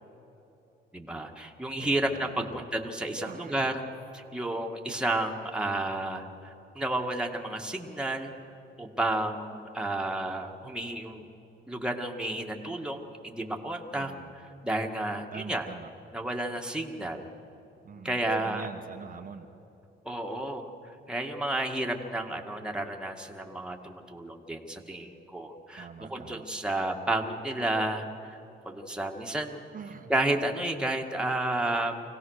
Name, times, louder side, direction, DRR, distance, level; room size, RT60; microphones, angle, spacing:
voice 1, 0.9-3.8 4.1-8.3 8.8-11.3 11.7-15.7 16.1-17.3 18.0-18.7 20.0-20.7 21.1-28.4 28.7-29.6 30.1-31.9, right 1 dB, 5° right, 2 dB, 1.9 m, -31 dB
voice 2, 1.8-2.6 3.2-3.7 13.9-14.3 15.3-15.9 17.8-19.5 25.8-26.4 29.7-30.1, right 6 dB, 45° right, 4 dB, 1.1 m, -44 dB
24.5 x 17.5 x 6.5 m, 3.0 s
cardioid pair, 90°, 20 cm